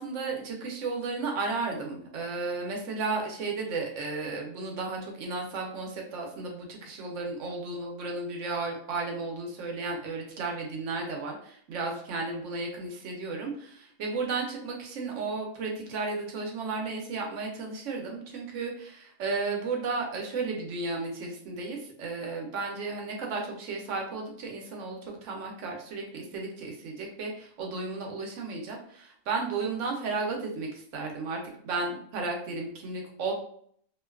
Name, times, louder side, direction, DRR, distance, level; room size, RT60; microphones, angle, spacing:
voice 1, 0.0-33.3, right 3 dB, 70° right, 1 dB, 0.9 m, -34 dB
2.5 x 2.2 x 2.3 m, 0.62 s
omnidirectional pair, 1.4 m